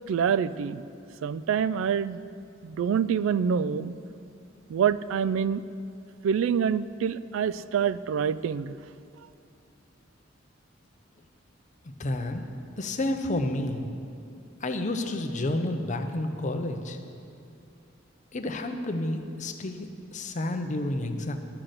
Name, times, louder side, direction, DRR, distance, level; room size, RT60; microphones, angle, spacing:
voice 1, 0.1-0.8 1.2-2.2 2.6-3.9 4.7-5.6 6.2-8.8, right 7 dB, 80° right, 16 dB, 0.3 m, -26 dB
voice 2, 12.0-12.5 12.8-13.9 14.6-17.0 18.3-21.4, left 1 dB, 40° left, 6 dB, 0.7 m, -30 dB
11.5 x 5.9 x 6.6 m, 2.6 s
head